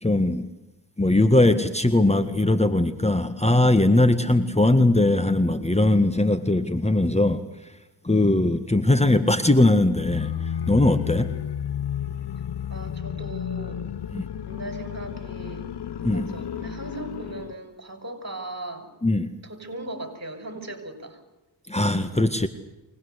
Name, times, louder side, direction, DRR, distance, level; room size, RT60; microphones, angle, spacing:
voice 1, 0.0-0.5 1.0-7.4 8.0-11.3 14.1-14.2 16.0-16.3 19.0-19.3 21.7-22.5, left 2 dB, 15° left, 11 dB, 1.7 m, -20 dB
sound 1, 9.9-17.6, left 9 dB, 70° left, 1.2 m, -32 dB
voice 2, 12.7-13.9 14.5-15.7 16.1-18.9 19.4-21.2, right 2 dB, 40° right, 9 dB, 6.3 m, -38 dB
25.0 x 20.0 x 8.2 m, 1.0 s
cardioid pair, 50°, 42 cm